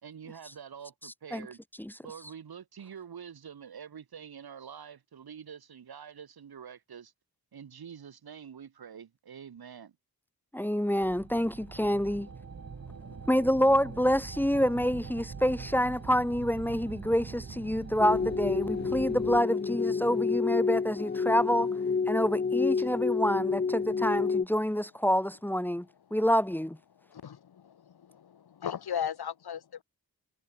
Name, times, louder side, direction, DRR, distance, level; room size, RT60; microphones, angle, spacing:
voice 1, 0.0-1.6 2.0-7.1 7.5-10.0, right 7 dB, 75° right, 4.5 m, -46 dB
voice 2, 10.5-12.3 13.3-21.7 22.1-25.9 26.1-26.8, equal, 5° left, 1.2 m, -27 dB
sound 1, 11.0-19.4, right 5 dB, 45° right, 3.7 m, -43 dB
voice 3, 12.9-13.2 27.1-29.8, left 8 dB, 90° left, 2.5 m, -37 dB
sound 2, 18.0-24.5, left 5 dB, 25° left, 0.8 m, -29 dB
wide cardioid pair, 175°, 37 cm